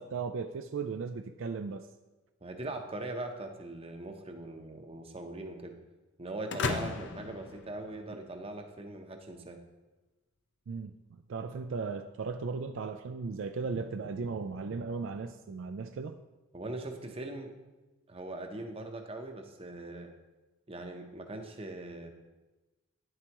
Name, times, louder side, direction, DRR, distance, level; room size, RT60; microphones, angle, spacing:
voice 1, 0.0-1.9 10.7-16.2, right 4 dB, 60° right, 8 dB, 0.3 m, -36 dB
voice 2, 2.4-5.8 6.2-9.6 16.5-17.5 18.1-20.1 20.7-22.1, right 2 dB, 25° right, 4 dB, 0.7 m, -41 dB
sound 1, 6.5-8.4, left 4 dB, 55° left, 0.6 m, -36 dB
10.0 x 7.8 x 3.0 m, 1.1 s
head